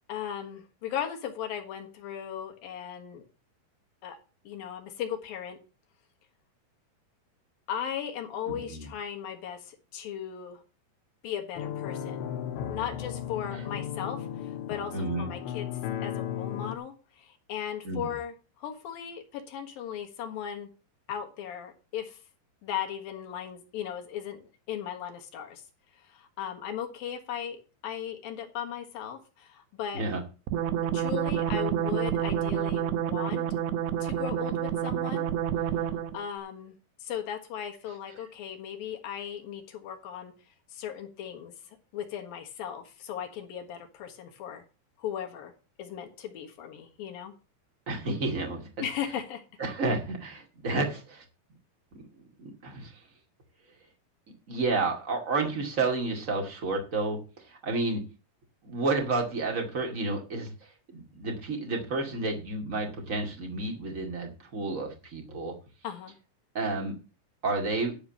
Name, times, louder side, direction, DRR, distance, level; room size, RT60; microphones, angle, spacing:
voice 1, 0.1-3.3 4.0-4.2 4.4-5.6 7.7-10.6 11.2-12.3 12.7-15.7 16.0-20.7 21.1-22.2 22.6-25.6 26.0-30.0 30.9-33.5 34.0-35.3 35.8-36.7 37.0-40.3 40.7-44.6 45.0-45.5 45.8-47.3 48.8-49.4 65.8-66.1, left 9 dB, 65° left, 4 dB, 2.9 m, -37 dB
voice 2, 8.5-8.9 14.9-15.3 17.8-18.1 29.9-30.2 47.9-48.7 49.6-51.2 51.9-52.0 52.4-52.9 54.5-57.2 57.5-58.0 58.6-60.5 60.9-65.5 66.5-67.0 67.4-67.9, right 3 dB, 30° right, 2 dB, 1.7 m, -30 dB
sound 1, 11.6-16.8, left 9 dB, 85° left, 3.4 m, -35 dB
sound 2, 30.5-36.2, right 10 dB, 75° right, 2.7 m, -29 dB
12.0 x 4.9 x 7.3 m, 0.32 s
omnidirectional pair, 5.1 m